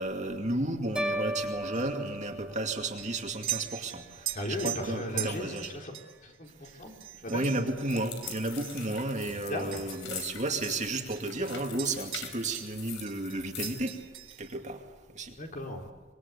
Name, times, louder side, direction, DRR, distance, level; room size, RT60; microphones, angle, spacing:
voice 1, 0.0-5.7 7.3-13.9 14.4-14.8 15.1-15.4, right 2 dB, 40° right, 3 dB, 2.3 m, -33 dB
sound 1, 1.0-3.2, equal, 5° right, 1.1 m, -35 dB
sound 2, 1.7-10.4 10.6-12.8 13.1-14.6, right 13 dB, 90° right, 2.7 m, -42 dB
voice 2, 4.3-5.9 6.2-6.9 7.2-7.5 9.2-9.8 15.4-15.8, left 1 dB, 45° left, 2 dB, 4.0 m, -36 dB
sound 3, 7.8-13.9, left 8 dB, 85° left, 3.5 m, -43 dB
25.5 x 22.0 x 8.3 m, 1.4 s
head